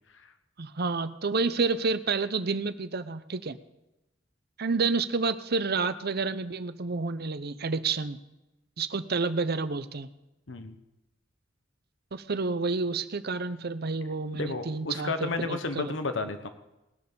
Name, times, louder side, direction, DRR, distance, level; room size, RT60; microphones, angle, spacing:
voice 1, 0.6-3.6 4.6-8.2 8.8-10.1 12.1-15.9, right 4 dB, 55° right, 13 dB, 0.8 m, -29 dB
voice 2, 14.3-16.5, left 3 dB, 75° left, 9 dB, 1.3 m, -32 dB
19.5 x 6.6 x 7.0 m, 0.94 s
head